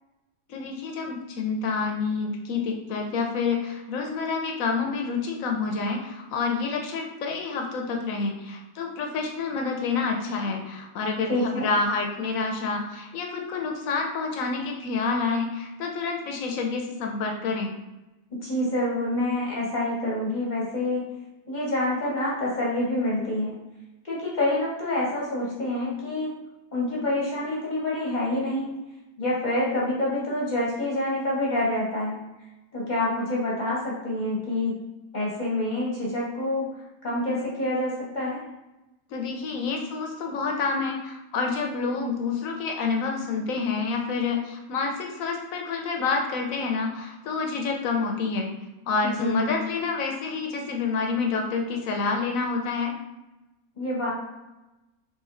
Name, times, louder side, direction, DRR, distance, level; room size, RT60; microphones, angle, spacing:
voice 1, 0.5-17.7 39.1-48.5 48.9-52.9, left 4 dB, 70° left, 1 dB, 1.0 m, -28 dB
voice 2, 11.3-11.7 18.4-21.1 21.5-23.5 24.0-26.3 26.7-28.7 29.2-32.2 32.7-34.9 35.1-36.7 37.0-38.4 49.0-49.6 53.8-54.1, left 1 dB, 40° left, -5 dB, 0.8 m, -27 dB
4.1 x 3.0 x 2.5 m, 1.0 s
omnidirectional pair, 1.5 m